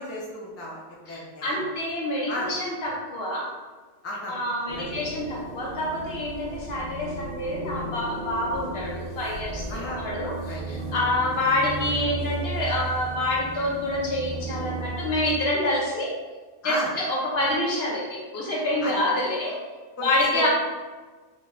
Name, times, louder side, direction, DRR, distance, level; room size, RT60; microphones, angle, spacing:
voice 1, 0.0-1.6 2.3-2.5 4.0-4.3 4.7-4.8 9.7-10.0 10.5-11.1 16.6-16.9 18.8-19.0 20.0-20.5, left 1 dB, 15° left, -4 dB, 0.5 m, -34 dB
voice 2, 1.1-3.5 4.3-16.1 16.6-19.6 20.0-20.5, left 1 dB, 70° left, -3 dB, 1.0 m, -27 dB
sound 1, 4.7-15.4, right 3 dB, 50° right, 0.6 m, -35 dB
5.5 x 2.2 x 2.5 m, 1.3 s
omnidirectional pair, 1.1 m